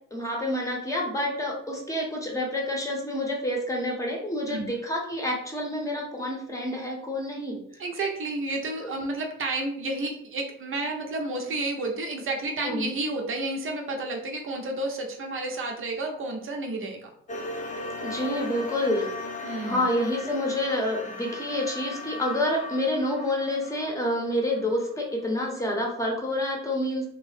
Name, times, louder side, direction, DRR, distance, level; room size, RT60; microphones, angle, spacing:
voice 1, 0.1-7.6 12.6-12.9 18.0-19.1 19.6-27.1, left 1 dB, 10° left, -1 dB, 0.9 m, -28 dB
voice 2, 7.8-17.1 19.4-19.9, right 2 dB, 45° right, 2 dB, 0.7 m, -31 dB
sound 1, 17.3-25.3, left 2 dB, 25° left, 0.5 m, -38 dB
2.9 x 2.0 x 3.2 m, 0.67 s
cardioid pair, 90°, 30 cm